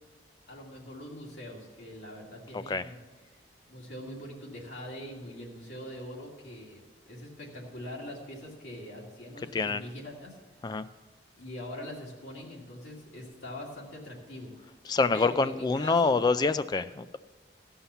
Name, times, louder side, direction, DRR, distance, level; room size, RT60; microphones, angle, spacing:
voice 1, 0.5-3.0 3.2-3.4 3.7-10.4 11.4-14.7 15.1-16.2, left 1 dB, 80° left, -3 dB, 2.4 m, -43 dB
voice 2, 14.9-17.2, left 4 dB, 25° left, 13 dB, 0.3 m, -26 dB
15.5 x 5.6 x 6.9 m, 1.3 s
head